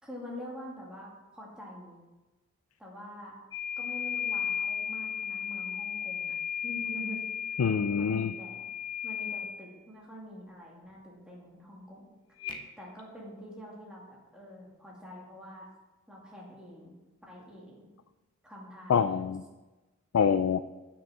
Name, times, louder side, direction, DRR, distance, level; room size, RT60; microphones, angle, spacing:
voice 1, 0.0-1.9 2.8-3.4 3.8-6.3 6.6-7.2 8.0-8.6 9.0-12.1 12.8-15.7 16.1-17.0 17.2-17.9 18.4-19.4, left 1 dB, 5° right, -4 dB, 2.3 m, -45 dB
sound 1, 3.5-9.6 12.4-12.6, left 8 dB, 20° left, 1.1 m, -35 dB
voice 2, 7.6-8.3 18.9-19.4 20.1-20.6, left 7 dB, 80° left, 12 dB, 0.4 m, -25 dB
9.4 x 6.2 x 7.3 m, 1.2 s
head